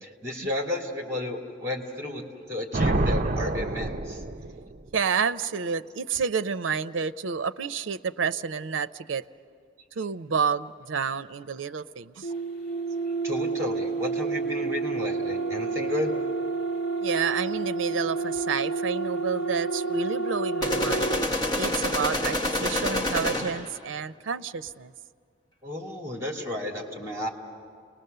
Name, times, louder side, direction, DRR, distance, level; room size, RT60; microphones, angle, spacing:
voice 1, 0.0-4.2 13.2-16.1 25.6-27.3, left 1 dB, 15° right, 0 dB, 2.5 m, -32 dB
Thunder, 2.7-4.9, right 2 dB, 40° right, 0.6 m, -27 dB
voice 2, 4.9-9.2 10.0-12.3 17.0-21.1 21.5-24.9, right 6 dB, 85° right, 12 dB, 0.5 m, -29 dB
sound 1, 12.2-21.3, right 4 dB, 75° left, 1.6 m, -29 dB
sound 2, 20.6-23.8, left 1 dB, 20° left, 1.2 m, -27 dB
30.0 x 20.5 x 6.7 m, 2.1 s
head